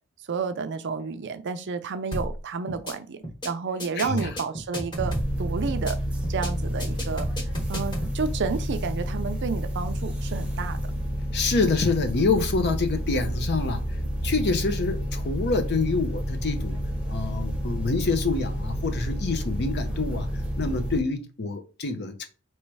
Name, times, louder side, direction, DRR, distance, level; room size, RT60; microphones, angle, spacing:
voice 1, 0.3-3.2 3.4-6.0 6.3-7.3 7.7-10.8, right 5 dB, 55° right, 0.5 m, -30 dB
sound 1, 2.1-2.4 2.7-2.9 3.2-3.5 3.8-5.4 5.7-5.9 6.2-6.5 6.8-8.1, equal, 20° left, 1.3 m, -32 dB
voice 2, 4.0-4.3 11.3-13.9 14.2-16.8 17.1-20.3 20.6-22.3, left 3 dB, 50° left, 0.7 m, -26 dB
sound 2, 5.0-21.0, equal, 5° right, 0.9 m, -30 dB
3.2 x 3.0 x 4.7 m
head